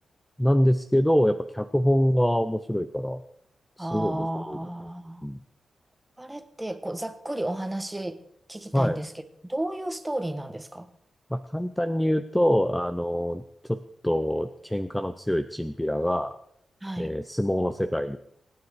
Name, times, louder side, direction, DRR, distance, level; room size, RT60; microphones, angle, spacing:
voice 1, 0.4-3.2 3.8-4.6 5.2-5.4 8.7-9.0 11.3-13.4 13.7-16.3 17.0-18.2, equal, 5° left, 10 dB, 0.6 m, -25 dB
voice 2, 3.8-5.3 6.2-8.2 8.5-9.1 9.4-10.9 16.8-17.1, right 1 dB, 10° right, 9 dB, 1.4 m, -32 dB
24.5 x 9.8 x 4.8 m, 0.74 s
wide cardioid pair, 110°, 0 cm